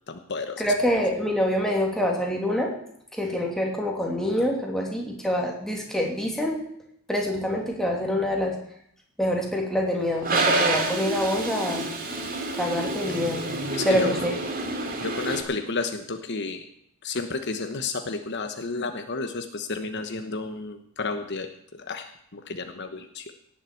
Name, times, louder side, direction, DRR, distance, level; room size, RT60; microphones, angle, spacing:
voice 1, 0.1-0.6 13.8-14.2 15.0-16.6 17.0-21.5 21.9-23.2, left 3 dB, 50° left, 7 dB, 1.1 m, -31 dB
voice 2, 0.6-2.7 3.1-6.6 7.1-8.6 9.2-11.9 12.6-14.4, left 1 dB, ahead, 0 dB, 2.8 m, -26 dB
Toilet flush, 10.2-15.4, right 2 dB, 40° right, 2.5 m, -28 dB
17.5 x 7.6 x 8.5 m, 0.71 s
head